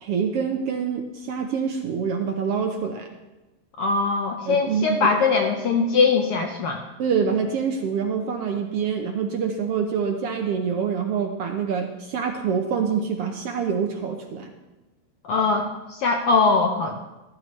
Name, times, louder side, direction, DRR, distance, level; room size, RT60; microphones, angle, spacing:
voice 1, 0.0-3.1 4.5-5.1 7.0-14.5, right 6 dB, 70° right, 4 dB, 1.5 m, -26 dB
voice 2, 3.8-6.8 15.2-17.0, left 4 dB, 75° left, 3 dB, 1.3 m, -21 dB
13.5 x 13.5 x 3.2 m, 1.1 s
omnidirectional pair, 3.3 m